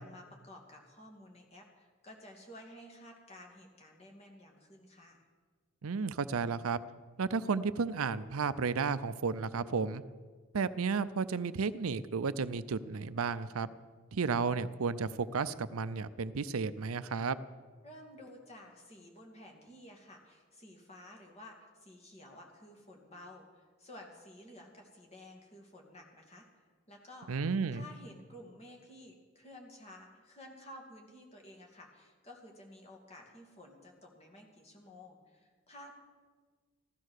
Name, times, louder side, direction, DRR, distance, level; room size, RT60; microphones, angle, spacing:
voice 1, 0.0-5.2 17.8-26.5 26.9-27.3 27.7-36.0, left 1 dB, 30° left, 1 dB, 2.5 m, -53 dB
voice 2, 5.8-6.8 7.2-10.0 10.5-13.7 14.1-17.4 27.3-27.9, right 5 dB, 85° right, 14 dB, 0.6 m, -33 dB
15.0 x 12.5 x 6.5 m, 1.5 s
head